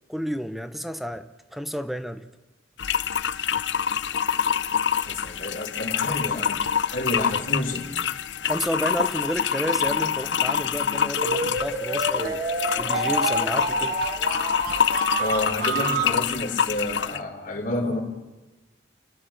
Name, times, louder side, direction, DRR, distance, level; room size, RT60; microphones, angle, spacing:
voice 1, 0.1-2.3 8.4-12.4 12.8-14.0, equal, ahead, 11 dB, 0.9 m, -31 dB
sound 1, 2.8-17.2, left 7 dB, 80° left, 0.7 m, -26 dB
voice 2, 5.0-7.9 14.8-14.9 15.2-18.0, left 2 dB, 45° left, 2 dB, 3.7 m, -29 dB
sound 2, 11.2-16.2, right 2 dB, 55° right, 3.6 m, -28 dB
29.5 x 12.5 x 7.3 m, 1.1 s
head